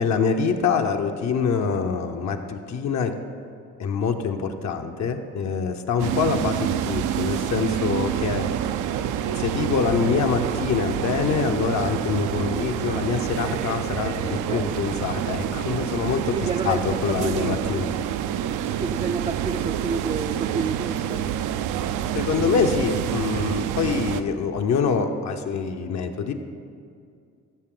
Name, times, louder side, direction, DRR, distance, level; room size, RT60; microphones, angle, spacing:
voice 1, 0.0-3.1 3.8-8.5 9.4-16.3 16.6-17.9 22.1-26.3, left 5 dB, 65° left, 5 dB, 0.8 m, -25 dB
sound 1, 6.0-24.2, right 10 dB, 85° right, 0.5 m, -27 dB
voice 2, 14.5-14.9 16.3-17.7 18.8-21.3, right 4 dB, 20° right, 3 dB, 0.3 m, -30 dB
14.5 x 6.7 x 3.8 m, 2.4 s
cardioid pair, 90°, 30 cm